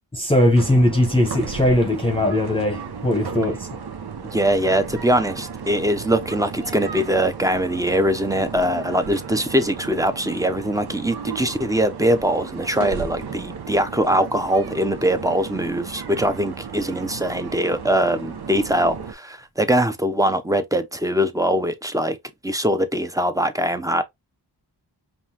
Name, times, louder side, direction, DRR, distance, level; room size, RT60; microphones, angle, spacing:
voice 1, 0.1-3.7, left 1 dB, 10° left, 1.0 m, -19 dB
sound 1, 0.6-19.1, right 6 dB, 60° right, 0.8 m, -34 dB
voice 2, 4.3-22.2 22.4-24.0, equal, 10° right, 0.7 m, -22 dB
5.3 x 2.5 x 2.9 m
wide cardioid pair, 65°, 43 cm